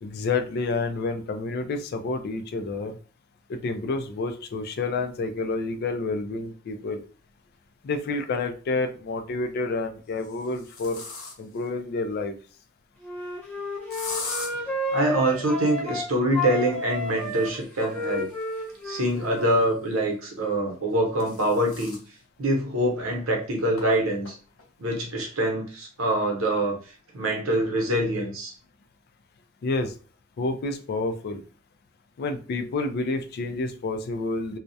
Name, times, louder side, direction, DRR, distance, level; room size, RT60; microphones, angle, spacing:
voice 1, 0.0-3.0 3.5-7.0 7.8-11.0 11.4-12.4 29.6-29.9 30.4-31.4 32.2-34.6, left 3 dB, 50° left, 8 dB, 0.3 m, -29 dB
sound 1, 7.5-7.6 9.1-9.5 10.1-11.7 13.9-14.5 17.1-19.7 20.7-22.1 22.5-22.6 23.0-23.1 23.8-23.9 24.2-24.6, left 4 dB, 80° left, 0.7 m, -40 dB
Wind instrument woodwind instrument, 13.0-16.1 16.3-19.6, left 2 dB, 5° left, 0.6 m, -32 dB
voice 2, 14.6-18.3 18.8-21.9 22.4-24.4 24.8-26.8 27.1-28.5, right 1 dB, 80° right, 1 dB, 0.8 m, -25 dB
2.3 x 2.0 x 2.6 m, 0.38 s
head